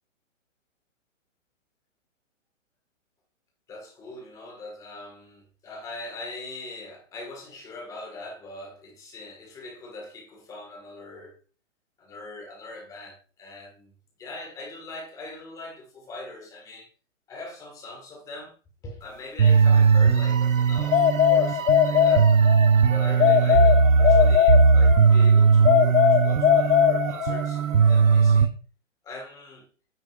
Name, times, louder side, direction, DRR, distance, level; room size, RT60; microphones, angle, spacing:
voice 1, 3.7-11.4 12.0-16.9 17.3-18.6 18.8-22.3 22.9-28.5 29.0-29.7, left 2 dB, 10° left, 1.6 m, -41 dB
sound 1, 19.4-28.5, right 5 dB, 85° right, 1.2 m, -19 dB
sound 2, 20.9-22.7 23.2-25.1 25.7-27.5, left 10 dB, 85° left, 1.0 m, -20 dB
9.3 x 8.8 x 2.4 m
hypercardioid pair, 165°, 39 cm